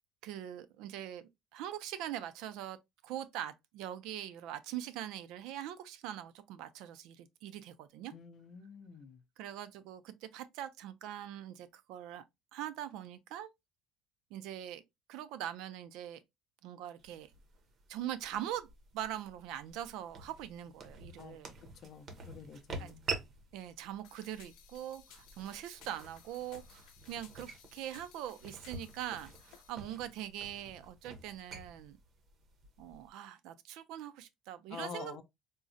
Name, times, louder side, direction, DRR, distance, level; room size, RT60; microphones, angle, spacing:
voice 1, 0.2-2.8 3.0-8.1 9.4-12.2 12.5-13.5 14.3-14.8 15.1-16.2 16.6-17.3 17.9-18.7 18.9-21.6 22.8-22.9 23.5-32.0 32.8-35.2, right 11 dB, 80° right, 0.4 m, -42 dB
voice 2, 8.1-9.2 21.2-23.0 34.7-35.2, left 6 dB, 45° left, 0.5 m, -48 dB
Footsteps to listener and away (squeaky heel), 17.0-33.1, right 3 dB, 40° right, 0.6 m, -48 dB
sound 1, 24.0-29.7, left 8 dB, 90° left, 0.6 m, -60 dB
3.7 x 2.0 x 2.5 m
cardioid pair, 160°, 0 cm